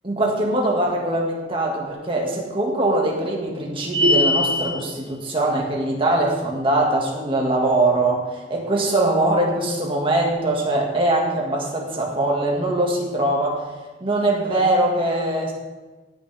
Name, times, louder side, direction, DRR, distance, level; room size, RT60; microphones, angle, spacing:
voice 1, 0.0-13.6 14.0-15.5, right 1 dB, 30° right, -1 dB, 1.8 m, -22 dB
sound 1, 3.9-4.8, left 1 dB, 90° right, 2.6 m, -19 dB
15.5 x 6.3 x 3.4 m, 1.2 s
head